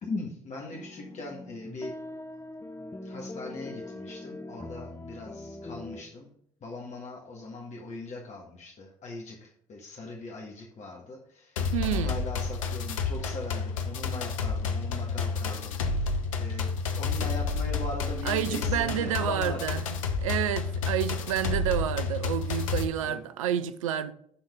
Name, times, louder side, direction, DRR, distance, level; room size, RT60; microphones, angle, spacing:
voice 1, 0.0-1.9 3.0-6.3 6.6-16.7 17.0-19.6 23.0-23.2, left 2 dB, 45° left, 1.6 m, -40 dB
sound 1, 0.7-6.0, left 2 dB, 15° left, 0.9 m, -42 dB
sound 2, 11.6-22.8, left 4 dB, 80° left, 0.7 m, -30 dB
voice 2, 11.7-12.2 18.2-19.8 20.2-24.1, right 11 dB, 80° right, 0.4 m, -29 dB
11.5 x 3.9 x 3.5 m
figure-of-eight pair, 50°, 17 cm